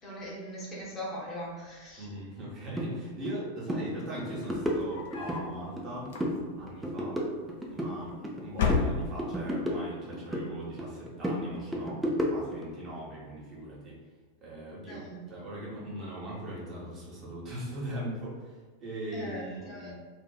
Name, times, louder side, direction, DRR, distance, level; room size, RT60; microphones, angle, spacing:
voice 1, 0.0-2.1 14.9-15.3 19.1-19.9, equal, 25° left, -6 dB, 0.7 m, -40 dB
voice 2, 2.0-6.1 6.5-7.2 7.7-8.1 8.4-12.0 12.3-14.0 14.4-19.9, right 1 dB, 30° right, -6 dB, 0.9 m, -40 dB
sound 1, 2.8-2.9 3.2-3.4 3.7-3.8 4.2-5.4 5.8-6.4 6.7-8.4 8.7-10.5 10.8-12.6, equal, 5° right, 0.4 m, -32 dB
sound 2, 4.3-5.5 6.0-6.7 7.7-8.2 8.5-9.4, left 5 dB, 60° left, 0.4 m, -31 dB
2.5 x 2.3 x 2.2 m, 1.4 s
figure-of-eight pair, 90°, 0 cm